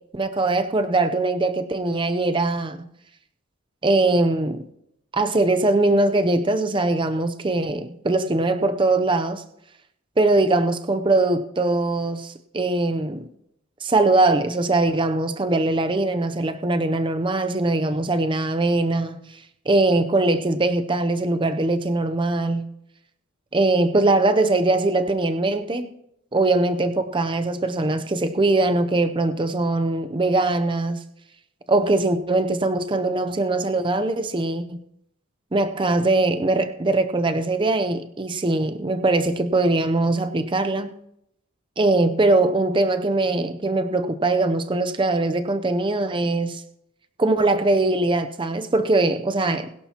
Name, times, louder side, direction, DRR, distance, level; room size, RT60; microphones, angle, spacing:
voice 1, 0.1-2.8 3.8-4.6 5.1-9.4 10.2-13.3 13.8-19.2 19.7-22.7 23.5-25.9 26.3-31.0 31.7-34.8 35.5-40.9 41.8-46.6 47.2-49.7, right 2 dB, 25° right, 0.5 m, -21 dB
21.0 x 11.5 x 2.9 m
head